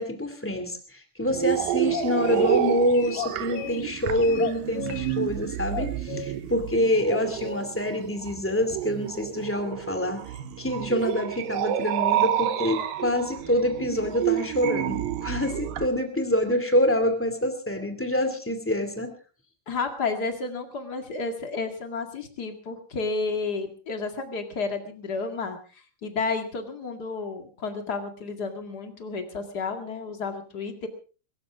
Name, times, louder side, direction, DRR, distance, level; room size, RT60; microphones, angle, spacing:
voice 1, 0.0-19.1, left 1 dB, 10° left, 6 dB, 0.7 m, -26 dB
sound 1, 1.3-15.9, right 12 dB, 70° right, 2.3 m, -29 dB
sound 2, 1.9-2.6 2.9-3.8 4.2-5.1 5.7-6.3 7.1-7.6, left 11 dB, 85° left, 3.4 m, -35 dB
voice 2, 19.7-30.9, left 4 dB, 45° left, 5 dB, 1.2 m, -31 dB
23.5 x 14.5 x 3.6 m, 0.37 s
omnidirectional pair, 5.2 m